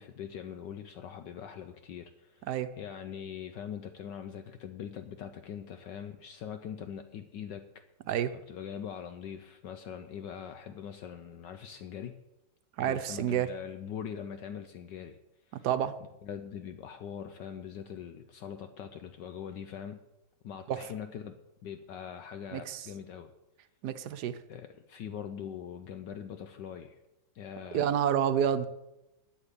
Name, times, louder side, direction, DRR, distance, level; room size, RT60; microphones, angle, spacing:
voice 1, 0.0-2.5 2.8-7.6 8.3-12.1 12.8-15.2 15.5-15.7 16.2-20.0 20.4-21.3 21.6-23.3 24.5-27.0 27.3-27.9, left 8 dB, 70° left, 1.3 m, -42 dB
voice 2, 12.8-13.5 15.6-16.0 20.7-20.8 22.5-22.9 23.8-24.4 27.7-28.7, right 9 dB, 65° right, 1.2 m, -29 dB
9.9 x 8.8 x 8.5 m
omnidirectional pair, 2.1 m